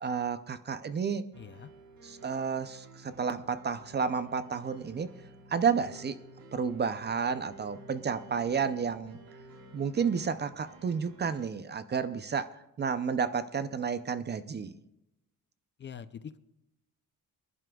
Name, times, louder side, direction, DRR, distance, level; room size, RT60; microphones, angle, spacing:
voice 1, 0.0-1.3 2.0-5.1 5.5-6.2 6.5-9.2 9.7-14.7, right 6 dB, 30° right, 13 dB, 0.5 m, -31 dB
sound 1, 1.3-11.5, right 1 dB, 90° right, 2.8 m, -53 dB
voice 2, 1.4-1.7 15.8-16.4, left 7 dB, 35° left, 12 dB, 0.4 m, -44 dB
27.0 x 11.0 x 2.3 m, 0.90 s
wide cardioid pair, 180°, 35 cm